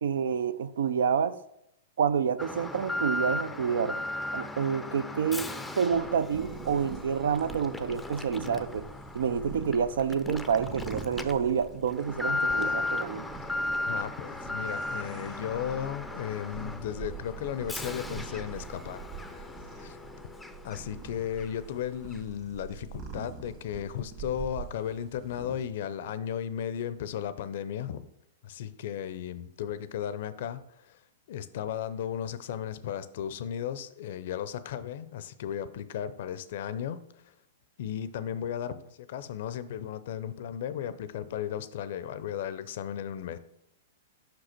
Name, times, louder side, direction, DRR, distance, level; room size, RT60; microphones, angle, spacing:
voice 1, 0.0-1.4 2.0-4.0 4.3-5.5 5.8-8.8 9.1-13.2, right 7 dB, 75° right, 0.4 m, -28 dB
Alarm, 2.4-21.1 21.4-21.5 22.1-22.2, left 2 dB, 5° left, 0.5 m, -36 dB
sound 1, 5.9-25.6, right 6 dB, 40° right, 1.8 m, -45 dB
voice 2, 13.9-19.5 19.8-20.0 20.6-28.1 28.4-31.0 31.3-37.0 37.8-43.4, left 9 dB, 60° left, 0.5 m, -35 dB
5.8 x 5.2 x 4.4 m
hypercardioid pair, 115°, 0 cm